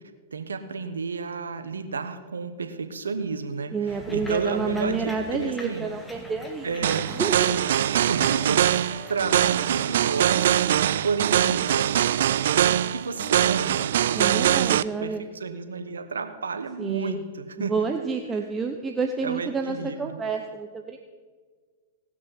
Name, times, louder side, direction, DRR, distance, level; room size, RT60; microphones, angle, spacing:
voice 1, 0.3-3.7 4.1-5.9 6.6-7.2 7.9-10.7 11.0-12.2 12.5-17.7 19.2-20.0, right 4 dB, 85° right, 8 dB, 1.2 m, -31 dB
voice 2, 3.7-7.6 14.1-15.2 16.8-17.2 17.6-21.0, right 4 dB, 15° right, 4 dB, 0.9 m, -29 dB
sound 1, 3.9-9.3, equal, 10° left, 1.8 m, -43 dB
sound 2, 6.8-14.8, right 11 dB, 65° right, 0.3 m, -22 dB
18.5 x 6.3 x 6.0 m, 1.5 s
hypercardioid pair, 115°, 0 cm